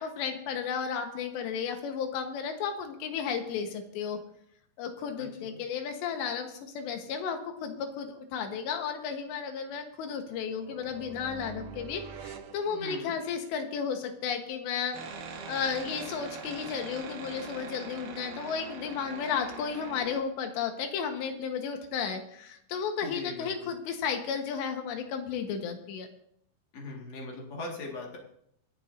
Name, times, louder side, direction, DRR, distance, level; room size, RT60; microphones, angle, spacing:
voice 1, 0.0-4.2 4.8-15.0 15.5-26.1, left 6 dB, 75° left, 5 dB, 3.3 m, -33 dB
voice 2, 5.2-5.6 12.7-13.1 23.0-23.5 26.7-28.2, left 2 dB, 45° left, 0 dB, 2.4 m, -40 dB
sound 1, 10.5-13.5, right 7 dB, 85° right, 3.4 m, -46 dB
sound 2, 14.9-20.2, right 5 dB, 60° right, 2.4 m, -42 dB
26.0 x 10.5 x 2.7 m, 0.71 s
omnidirectional pair, 5.4 m